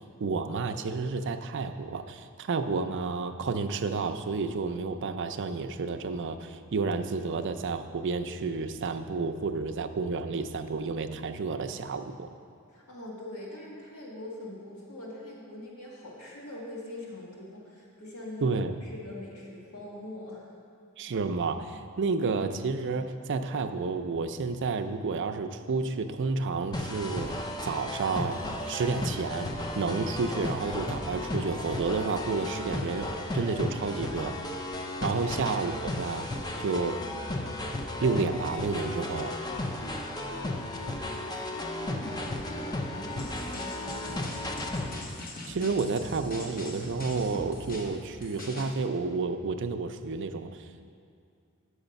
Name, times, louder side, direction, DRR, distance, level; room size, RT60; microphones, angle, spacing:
voice 1, 0.2-12.3 18.4-18.7 21.0-27.4 27.6-28.4 28.7-33.1 33.3-34.3 35.0-36.3 36.6-37.0 38.0-39.4 45.5-50.6, right 4 dB, 55° right, 7 dB, 0.5 m, -30 dB
voice 2, 12.7-20.5 40.7-44.8, left 1 dB, 80° left, -4 dB, 1.7 m, -43 dB
sound 1, 26.7-45.0, left 1 dB, 20° left, 0.5 m, -34 dB
sound 2, 43.2-48.7, left 1 dB, 40° left, 1.1 m, -42 dB
8.9 x 6.3 x 5.2 m, 2.4 s
head